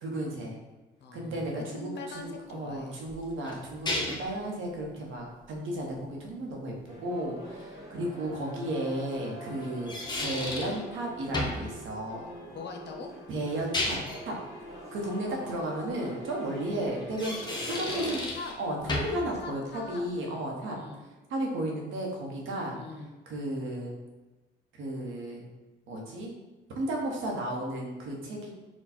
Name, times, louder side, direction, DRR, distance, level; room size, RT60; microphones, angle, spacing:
voice 1, 0.0-0.6 1.1-6.7 7.0-9.9 10.2-12.3 13.3-14.0 14.3-14.4 14.9-17.4 17.8-18.2 18.6-20.8 21.3-22.8 23.3-23.9 24.7-25.5 25.9-26.3 26.7-28.5, right 1 dB, 85° right, 0 dB, 1.0 m, -34 dB
voice 2, 1.0-3.0 8.0-8.7 12.5-13.1 17.7-18.5 19.4-21.0 22.7-23.1, left 3 dB, 60° left, 3 dB, 0.7 m, -43 dB
sound 1, 3.1-4.4 7.6-7.7 9.6-10.8 11.3-11.7 13.5-14.2 17.0-18.6 18.9-19.3, left 2 dB, 20° left, 0.8 m, -33 dB
sound 2, 6.9-18.1, right 1 dB, 15° right, 1.5 m, -45 dB
4.3 x 2.3 x 4.2 m, 1.2 s
cardioid pair, 90°, 20 cm